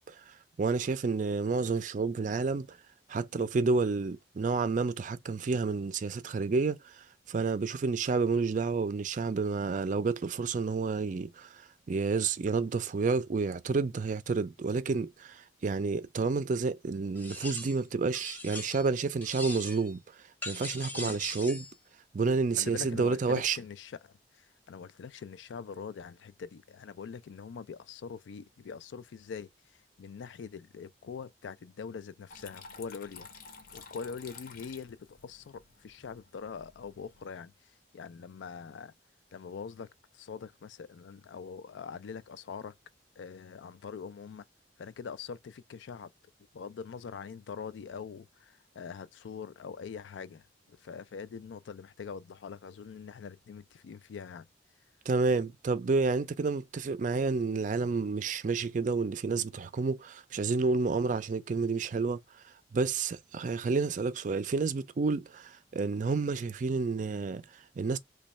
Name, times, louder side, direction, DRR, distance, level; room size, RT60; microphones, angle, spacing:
voice 1, 0.0-2.8 3.1-20.0 20.5-21.7 22.1-23.6 55.1-62.2 62.7-68.0, right 4 dB, 45° right, 0.4 m, -30 dB
sound 1, 17.2-17.8 18.1-18.9 19.2-19.9 20.4-21.7, left 2 dB, 10° left, 0.7 m, -41 dB
voice 2, 22.6-29.5 30.0-33.3 33.7-37.5 37.9-38.9 39.3-42.8 43.2-44.5 44.8-46.1 46.5-54.5, left 6 dB, 85° left, 0.4 m, -43 dB
Water tap faucet / Trickle dribble, 32.3-37.3, left 5 dB, 50° left, 0.7 m, -51 dB
3.0 x 2.3 x 4.1 m
head